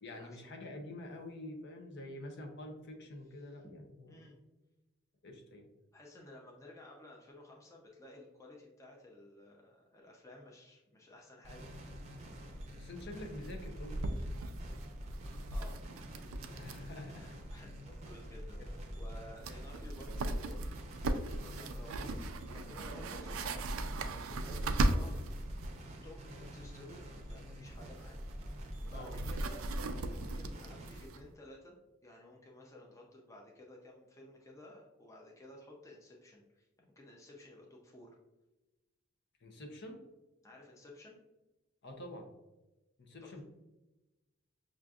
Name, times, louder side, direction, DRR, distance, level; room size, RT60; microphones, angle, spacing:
voice 1, 0.0-4.1 5.2-5.7 12.8-14.2 16.5-17.4 17.6-17.7 18.6-18.7 28.9-29.1 39.4-40.0 41.8-42.3 43.0-43.4, left 1 dB, 55° left, 3 dB, 0.7 m, -47 dB
voice 2, 4.1-4.4 5.9-11.7 15.5-15.8 17.2-21.1 21.4-25.4 25.8-28.2 28.8-29.7 30.1-31.7 32.0-38.2 40.4-41.2 43.2-43.4, left 1 dB, 15° left, -1 dB, 0.5 m, -54 dB
sound 1, 11.4-31.1, equal, 35° right, 0.6 m, -46 dB
sound 2, 12.1-12.2 12.4-12.5 12.8-13.0 13.4-17.0 17.2-17.3 19.0-19.1 19.4-25.8 27.6-31.3, right 2 dB, 80° right, 0.4 m, -38 dB
6.0 x 2.5 x 2.3 m, 1.0 s
head